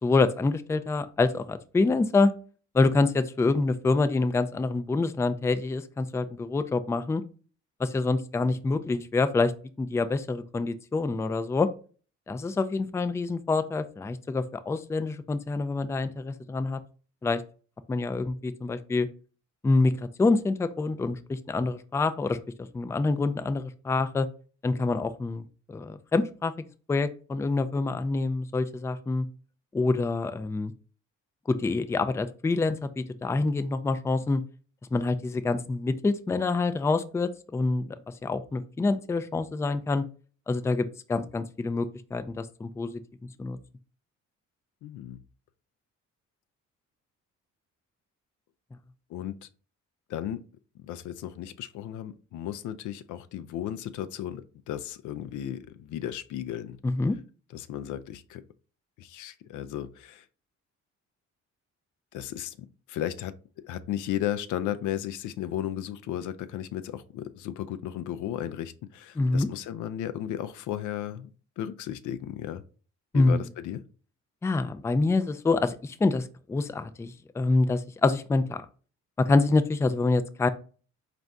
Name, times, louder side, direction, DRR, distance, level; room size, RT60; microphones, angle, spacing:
voice 1, 0.0-2.3 2.7-7.2 7.8-9.5 9.8-11.7 12.3-16.8 17.2-17.4 17.9-19.1 19.6-22.4 22.7-24.3 24.6-26.5 26.9-29.3 29.7-30.7 31.5-34.4 34.9-38.0 38.2-40.0 40.5-43.0 43.4-43.6 56.8-57.2 69.2-69.5 73.1-73.4 74.4-78.6 79.2-80.5, left 3 dB, 10° left, 0.3 m, -26 dB
voice 2, 44.8-45.2 49.1-49.5 50.1-50.4 50.8-56.8 57.5-58.4 59.0-60.2 62.1-62.6 62.9-63.3 63.6-71.3 71.6-72.6 73.1-73.8, left 11 dB, 80° left, 0.5 m, -34 dB
4.1 x 2.5 x 3.4 m
cardioid pair, 90°, 30 cm